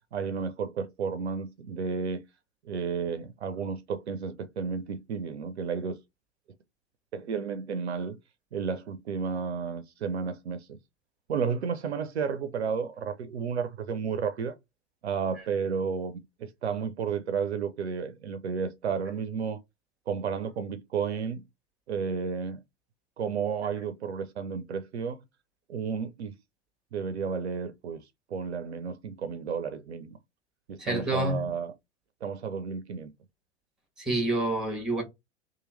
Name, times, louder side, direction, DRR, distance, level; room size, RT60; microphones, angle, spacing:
voice 1, 0.1-2.2 2.6-6.0 7.1-8.2 8.5-10.8 11.3-14.5 15.0-19.6 20.1-21.4 21.9-22.6 23.2-25.2 25.7-26.4 26.9-28.0 28.3-30.2 30.7-31.7 32.2-33.1, right 6 dB, 70° right, 0.5 m, -32 dB
voice 2, 30.8-31.5 34.0-35.0, right 1 dB, ahead, 1.2 m, -28 dB
2.9 x 2.2 x 3.1 m
figure-of-eight pair, 90°, 34 cm